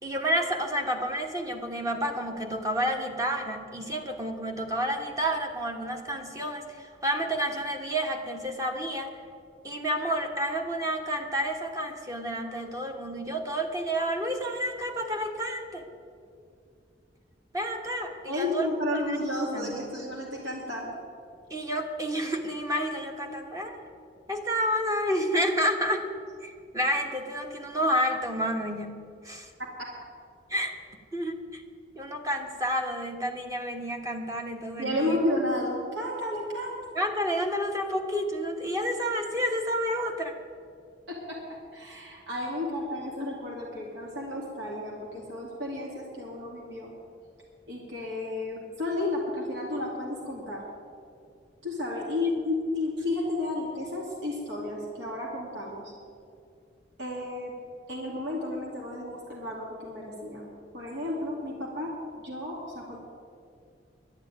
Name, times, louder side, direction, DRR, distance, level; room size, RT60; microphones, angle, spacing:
voice 1, 0.0-9.1 9.6-15.8 17.5-18.7 19.1-19.2 19.5-19.8 21.5-23.8 24.3-26.0 26.4-29.5 30.5-30.7 31.1-31.6 31.9-35.1 36.9-40.3, equal, 20° right, 3 dB, 1.3 m, -30 dB
voice 2, 18.3-21.0 34.8-36.8 41.1-41.4 41.7-46.9 47.7-50.6 51.6-55.9 57.0-57.5 57.9-63.0, left 1 dB, 75° right, -3 dB, 2.5 m, -32 dB
11.5 x 9.8 x 9.3 m, 2.4 s
head